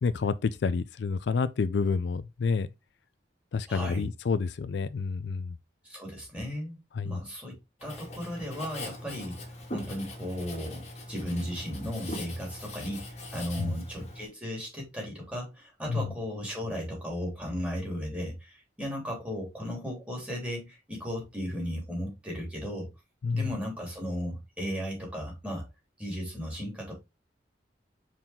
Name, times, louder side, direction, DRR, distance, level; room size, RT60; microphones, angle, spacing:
voice 1, 0.0-2.7 3.5-5.6 7.0-7.2 13.6-13.7 15.9-16.0 23.2-23.5, left 4 dB, 70° left, 0.4 m, -29 dB
voice 2, 3.7-4.1 5.8-7.5 7.8-9.4 9.7-22.9 23.3-25.7 26.0-26.9, equal, 5° right, 3.1 m, -35 dB
Writing, 7.8-14.3, left 1 dB, 35° left, 2.0 m, -41 dB
5.6 x 4.7 x 3.5 m
head